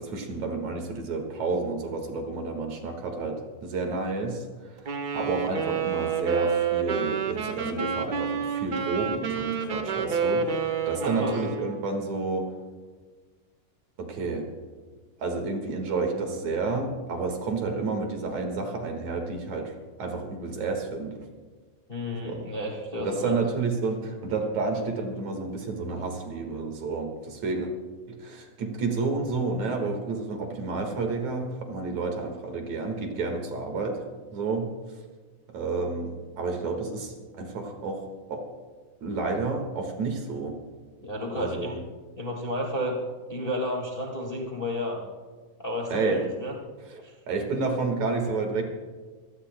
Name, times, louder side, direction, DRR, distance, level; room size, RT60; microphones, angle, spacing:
voice 1, 0.0-12.5 14.0-14.5 15.2-19.7 20.0-21.2 22.1-22.5 23.0-27.7 28.1-34.0 34.3-34.7 35.5-38.5 39.0-40.6 41.3-41.8 45.9-46.3 46.9-48.6, right 3 dB, 60° right, 4 dB, 2.9 m, -30 dB
Wind instrument woodwind instrument, 4.9-11.8, right 6 dB, 80° right, 0.9 m, -29 dB
voice 2, 11.0-11.4 21.9-23.3 41.0-41.8 42.2-43.0 43.3-45.0 45.6-46.5 47.0-47.1, left 1 dB, 25° left, -1 dB, 1.3 m, -31 dB
25.5 x 18.0 x 2.2 m, 1.4 s
omnidirectional pair, 3.8 m